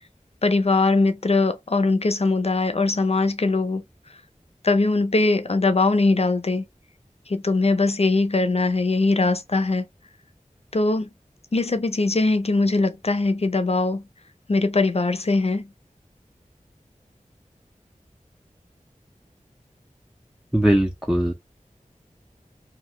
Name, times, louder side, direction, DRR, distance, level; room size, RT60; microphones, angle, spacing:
voice 1, 0.4-3.8 4.6-6.6 7.3-9.9 10.7-11.1 11.5-14.0 14.5-15.7, left 3 dB, 50° left, 0.5 m, -21 dB
voice 2, 20.5-21.3, right 1 dB, 5° right, 0.5 m, -20 dB
2.8 x 2.3 x 3.1 m
wide cardioid pair, 50°, 14 cm